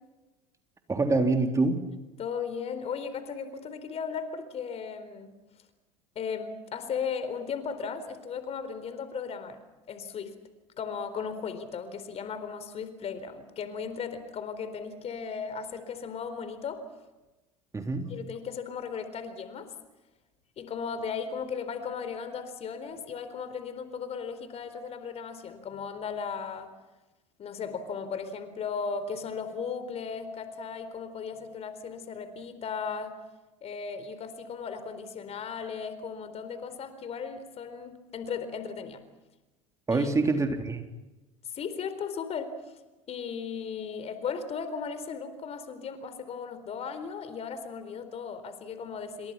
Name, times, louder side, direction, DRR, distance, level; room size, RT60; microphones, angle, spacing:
voice 1, 0.9-1.9 17.7-18.1 39.9-40.8, right 3 dB, 20° right, 5 dB, 3.7 m, -25 dB
voice 2, 2.2-5.3 6.2-9.6 9.9-10.3 10.8-16.8 18.1-19.7 20.6-26.7 27.4-33.2 33.6-39.0 39.9-40.1 41.5-42.5 43.1-49.3, left 6 dB, 40° left, 11 dB, 4.2 m, -36 dB
29.0 x 26.0 x 5.9 m, 1.1 s
hypercardioid pair, 75°, 16 cm